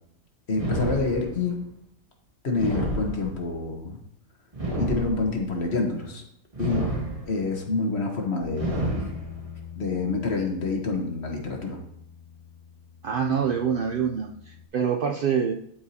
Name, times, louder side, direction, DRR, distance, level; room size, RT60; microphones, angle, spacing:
voice 1, 0.5-1.6 2.4-4.0 4.8-6.2 6.6-6.9 7.3-9.0 9.8-11.8, left 3 dB, 50° left, 2 dB, 1.3 m, -27 dB
sound 1, 0.5-1.6 2.5-3.6 4.5-5.6 6.5-7.6 8.5-9.6, right 1 dB, 25° right, 1.0 m, -30 dB
Bass guitar, 8.4-14.7, left 9 dB, 70° left, 1.1 m, -42 dB
voice 2, 13.0-15.5, right 7 dB, 80° right, 2 dB, 0.4 m, -25 dB
12.5 x 4.7 x 2.8 m, 0.73 s
omnidirectional pair, 1.5 m